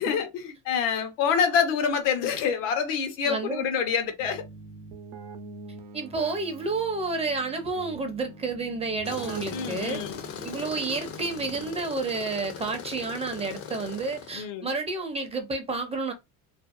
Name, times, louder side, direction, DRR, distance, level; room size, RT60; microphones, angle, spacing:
voice 1, 0.0-4.4 9.5-10.2 14.3-14.7, left 7 dB, 85° left, 0.8 m, -26 dB
voice 2, 3.2-3.6 5.9-10.0 10.4-16.1, right 3 dB, 15° right, 0.5 m, -30 dB
Keyboard (musical), 4.2-12.1, right 3 dB, 80° right, 0.6 m, -45 dB
Tools, 9.0-14.4, left 7 dB, 40° left, 0.5 m, -39 dB
2.5 x 2.2 x 2.4 m
cardioid pair, 130°, 35 cm